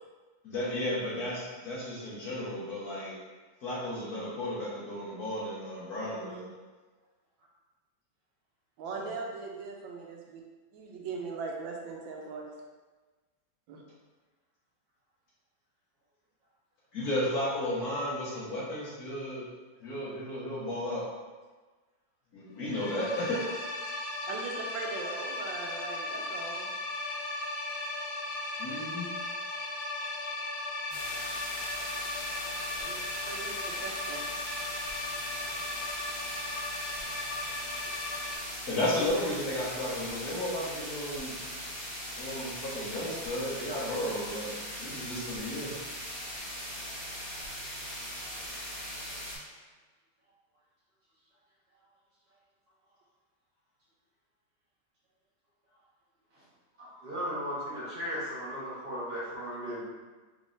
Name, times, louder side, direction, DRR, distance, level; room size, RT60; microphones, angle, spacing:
voice 1, 0.4-3.1 3.6-6.4 9.0-9.1 16.9-19.4 19.8-21.0 22.3-23.4 28.6-29.1 38.7-41.3 42.2-44.5 44.8-45.7, left 1 dB, 60° left, -8 dB, 1.4 m, -33 dB
voice 2, 6.2-6.5 8.8-10.4 10.7-12.5 13.7-13.8 24.3-26.7 32.8-34.3, right 4 dB, 85° right, 0 dB, 1.3 m, -40 dB
sound 1, 22.6-38.4, left 2 dB, 80° left, 1.4 m, -37 dB
sound 2, 30.9-49.4, equal, 25° left, 1.3 m, -40 dB
voice 3, 56.8-59.8, equal, 55° right, -8 dB, 1.7 m, -36 dB
4.0 x 3.5 x 2.5 m, 1.3 s
omnidirectional pair, 2.1 m